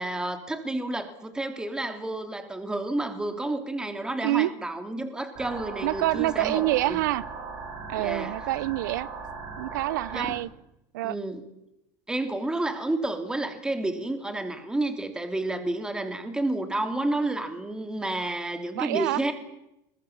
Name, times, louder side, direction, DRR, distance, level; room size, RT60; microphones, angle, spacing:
voice 1, 0.0-7.0 7.9-8.4 10.1-10.4 11.0-11.5 12.1-19.3, right 2 dB, 10° right, 7 dB, 2.9 m, -30 dB
sound 1, 5.4-10.4, right 4 dB, 45° right, 5.6 m, -38 dB
voice 2, 5.8-7.2 7.9-9.1 9.6-10.5 10.9-11.2 18.7-19.2, right 17 dB, 90° right, 21 dB, 0.9 m, -26 dB
29.0 x 22.0 x 7.3 m, 0.85 s
supercardioid pair, 135°, 10 cm